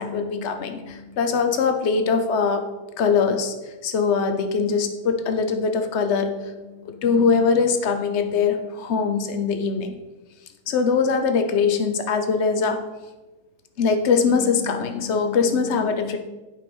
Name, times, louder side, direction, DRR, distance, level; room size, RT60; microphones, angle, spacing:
voice 1, 0.0-2.6 3.0-3.5 3.8-6.3 6.6-9.9 10.7-12.8 13.8-16.2, left 5 dB, 55° left, 7 dB, 0.7 m, -22 dB
8.2 x 6.0 x 5.3 m, 1.1 s
omnidirectional pair, 2.2 m